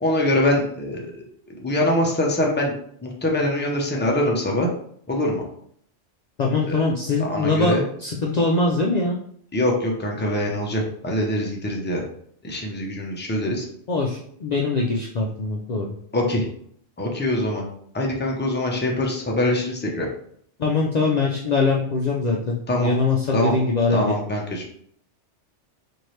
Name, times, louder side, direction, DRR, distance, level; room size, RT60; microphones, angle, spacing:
voice 1, 0.0-1.3 1.6-2.7 3.0-4.7 5.1-5.4 6.7-6.8 7.3-7.8 9.5-12.0 12.4-13.7 16.1-16.5 17.0-17.6 17.9-20.1 22.7-22.9 23.3-23.5 23.9-24.7, left 1 dB, 15° left, -1 dB, 0.5 m, -23 dB
voice 2, 6.4-9.2 13.9-15.9 20.6-24.2, left 3 dB, 65° left, -1 dB, 0.4 m, -22 dB
4.5 x 2.7 x 3.1 m, 0.65 s
omnidirectional pair, 1.3 m